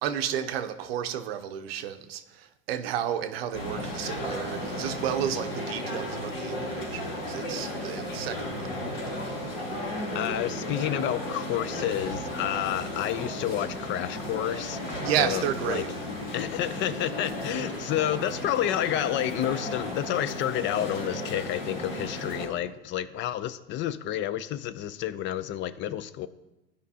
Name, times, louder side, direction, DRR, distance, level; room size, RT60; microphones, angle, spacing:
voice 1, 0.0-8.7 15.0-15.9, right 10 dB, 90° right, 0.7 m, -31 dB
sound 1, 3.5-22.5, left 1 dB, 75° left, 2.4 m, -34 dB
voice 2, 10.1-14.8 15.1-15.9 16.3-26.3, left 12 dB, 40° left, 0.4 m, -30 dB
12.5 x 5.1 x 2.7 m
supercardioid pair, 105°, 29 cm